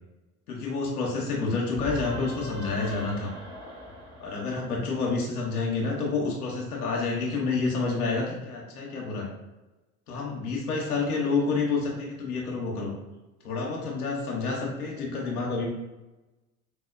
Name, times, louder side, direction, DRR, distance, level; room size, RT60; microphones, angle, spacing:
voice 1, 0.5-3.3 4.2-9.3 10.1-12.9 13.4-15.7, left 4 dB, 80° left, -2 dB, 0.8 m, -29 dB
sound 1, 1.7-5.3, right 1 dB, 10° right, 0.6 m, -42 dB
4.2 x 2.1 x 2.3 m, 1.1 s
figure-of-eight pair, 75°, 45 cm